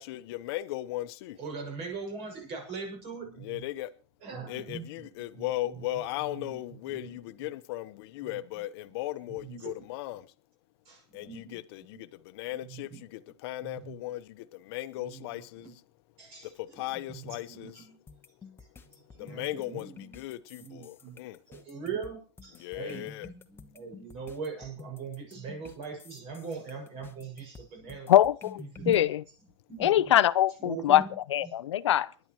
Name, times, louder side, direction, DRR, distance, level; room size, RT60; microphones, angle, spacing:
voice 1, 0.0-1.4 3.4-3.9 4.5-10.3 11.1-15.8 16.4-17.8 19.1-21.4 22.6-23.3, left 16 dB, 60° left, 1.1 m, -37 dB
voice 2, 1.4-3.6 4.2-7.2 8.2-9.0 9.2-9.7 10.8-11.6 11.9-12.0 12.5-13.0 13.6-13.9 14.9-15.7 16.2-18.0 18.9-20.2 20.6-21.2 21.5-28.1 28.6-29.0 29.7-30.0 30.6-31.2 31.4-31.5, right 5 dB, 45° right, 6.6 m, -41 dB
sound 1, 18.1-29.0, left 5 dB, 15° left, 1.2 m, -51 dB
voice 3, 28.1-29.2 29.8-31.0 31.3-32.1, left 12 dB, 90° left, 0.7 m, -23 dB
24.5 x 11.0 x 3.1 m
supercardioid pair, 130°, 15 cm